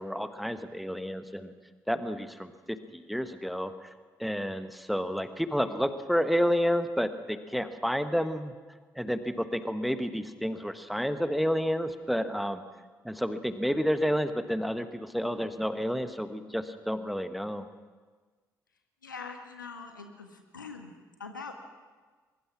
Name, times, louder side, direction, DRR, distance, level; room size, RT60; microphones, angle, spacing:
voice 1, 0.0-1.5 1.9-3.9 4.2-8.5 8.9-12.6 13.0-17.7, equal, ahead, 10 dB, 1.4 m, -30 dB
voice 2, 19.0-20.9 21.2-21.5, left 5 dB, 85° left, 5 dB, 1.3 m, -43 dB
22.5 x 22.0 x 6.0 m, 1.4 s
figure-of-eight pair, 40°, 10 cm